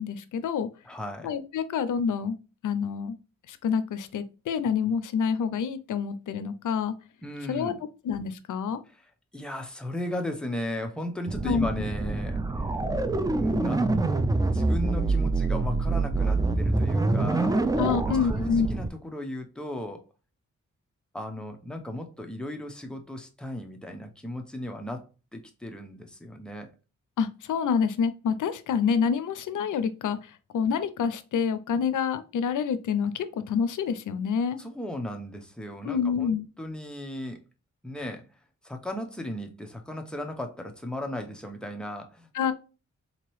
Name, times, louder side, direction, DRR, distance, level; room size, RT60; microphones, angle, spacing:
voice 1, 0.0-0.7 1.2-2.4 2.6-3.2 3.5-6.9 7.5-7.7 8.0-8.8 11.4-11.7 17.8-18.7 27.2-34.6 35.8-36.5 42.3-42.5, left 6 dB, 85° left, 0.5 m, -27 dB
voice 2, 0.8-1.3 7.2-7.8 9.3-12.8 13.3-13.9 14.4-17.6 18.0-20.0 21.1-26.7 34.6-37.4 37.8-38.2 38.6-42.3, left 1 dB, 5° left, 0.7 m, -36 dB
sound 1, 11.3-18.9, right 3 dB, 15° right, 0.3 m, -26 dB
3.9 x 2.9 x 3.0 m
cardioid pair, 75°, 30 cm